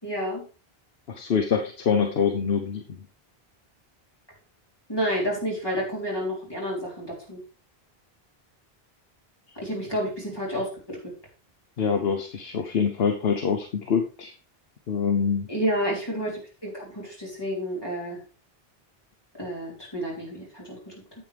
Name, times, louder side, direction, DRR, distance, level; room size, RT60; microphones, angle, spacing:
voice 1, 0.0-0.4 4.9-7.4 9.6-11.1 15.5-18.2 19.3-20.9, equal, 25° left, -3 dB, 3.7 m, -30 dB
voice 2, 1.1-3.0 11.8-14.3 14.9-15.5, left 6 dB, 75° left, 5 dB, 1.1 m, -25 dB
9.4 x 8.1 x 3.4 m, 0.35 s
omnidirectional pair, 1.0 m